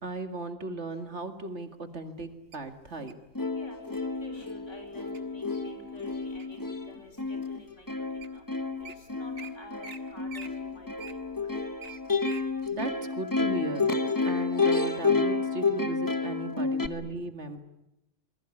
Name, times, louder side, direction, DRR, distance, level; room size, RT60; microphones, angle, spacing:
voice 1, 0.0-3.1 12.7-13.9 14.2-17.6, right 2 dB, 60° right, 8 dB, 2.3 m, -37 dB
Wild animals, 2.5-3.3 4.0-4.3 4.7-5.2 5.7-6.7 7.2-7.3 7.9-8.4 8.6-8.9 9.4-9.5 9.8-10.0 10.3-12.5 12.9-13.0, right 6 dB, 85° right, 2.2 m, -45 dB
Plucked string instrument, 3.0-3.1 3.3-16.9, left 4 dB, 15° left, 1.2 m, -30 dB
voice 2, 3.6-6.6 6.9-8.1 8.3-8.4 8.8-11.3, left 2 dB, 65° left, 6 dB, 5.1 m, -49 dB
28.0 x 20.5 x 9.8 m, 0.91 s
omnidirectional pair, 1.3 m